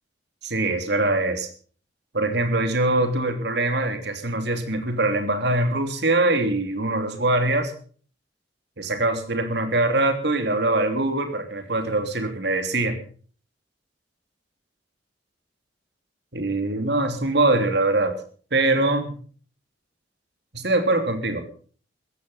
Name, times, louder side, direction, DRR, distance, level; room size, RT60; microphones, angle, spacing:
voice 1, 0.4-1.5 2.1-7.7 8.8-13.0 16.3-18.2 18.5-19.2 20.5-21.4, right 2 dB, 65° right, 7 dB, 3.1 m, -23 dB
16.0 x 14.5 x 5.6 m, 0.44 s
head